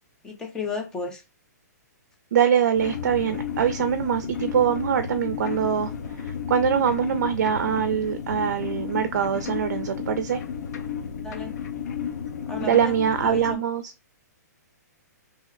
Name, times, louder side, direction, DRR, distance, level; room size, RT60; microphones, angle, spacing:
voice 1, 0.2-1.2 11.2-11.6 12.4-13.6, left 4 dB, 5° left, 0.4 m, -33 dB
voice 2, 2.3-5.9 6.2-10.4 12.6-13.9, right 8 dB, 70° right, 0.4 m, -23 dB
sound 1, 2.7-13.6, left 8 dB, 70° left, 0.5 m, -33 dB
2.7 x 2.1 x 3.6 m
hypercardioid pair, 165°, 9 cm